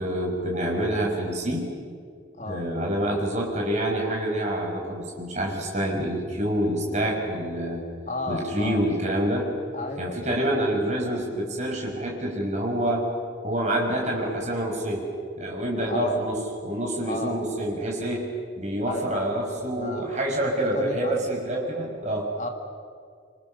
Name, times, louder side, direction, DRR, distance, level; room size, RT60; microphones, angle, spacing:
voice 1, 0.0-1.7 2.5-7.8 8.3-9.5 10.0-13.1 13.4-15.1 15.4-16.4 16.6-18.3 18.6-22.3, right 1 dB, 40° right, -1 dB, 5.8 m, -27 dB
voice 2, 2.3-2.7 8.1-8.9 9.7-10.6 15.9-16.3 17.0-17.4 18.8-19.3 19.8-20.1 20.6-21.2 22.4-22.5, left 2 dB, 40° left, 4 dB, 2.3 m, -33 dB
26.5 x 26.0 x 6.7 m, 2.1 s
head